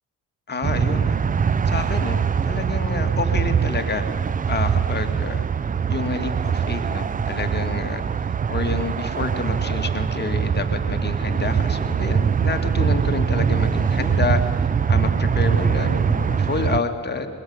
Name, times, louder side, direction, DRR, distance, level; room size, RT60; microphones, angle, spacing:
voice 1, 0.5-1.2 1.7-4.1 4.5-5.4 5.9-8.0 8.5-17.3, left 4 dB, 35° left, 6 dB, 2.4 m, -28 dB
sound 1, 0.6-16.8, right 6 dB, 25° right, 0.6 m, -22 dB
22.0 x 21.5 x 9.7 m, 2.1 s
cardioid pair, 90°, 30 cm